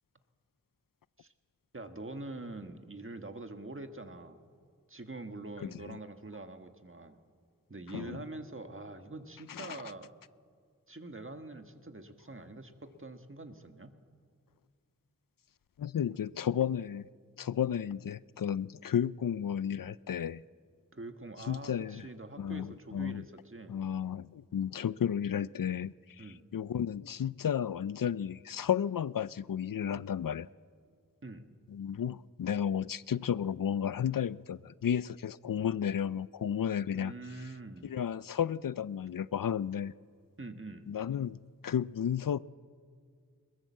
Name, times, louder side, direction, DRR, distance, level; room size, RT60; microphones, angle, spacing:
voice 1, 1.7-4.4 4.9-7.2 7.7-10.1 10.9-14.0 20.9-23.8 26.2-26.5 31.2-31.5 36.9-37.9 40.4-40.9, right 2 dB, 40° right, 7 dB, 1.6 m, -45 dB
voice 2, 5.6-6.0 7.9-8.2 9.5-9.8 15.8-17.1 17.4-20.4 21.5-22.1 22.4-23.2 23.7-26.3 26.5-30.5 31.7-37.1 37.8-39.9 40.9-41.4 41.6-42.4, left 9 dB, 75° left, 19 dB, 0.5 m, -33 dB
21.5 x 21.0 x 7.5 m, 2.1 s
wide cardioid pair, 50°, 33 cm